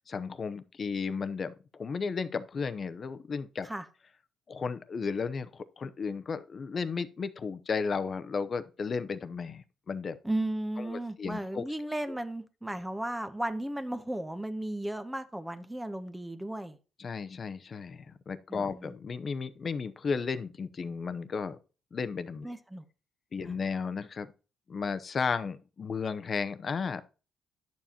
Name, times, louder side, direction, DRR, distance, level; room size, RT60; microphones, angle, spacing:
voice 1, 0.0-3.7 4.5-10.2 10.8-11.7 12.1-12.2 17.0-21.6 21.9-22.5 23.3-24.3 24.7-27.0, left 5 dB, 45° left, 0.7 m, -34 dB
voice 2, 10.2-16.8 18.5-18.9 22.4-22.8 23.4-23.5, right 1 dB, 5° right, 0.8 m, -35 dB
10.5 x 7.1 x 2.9 m
cardioid pair, 90°, 0 cm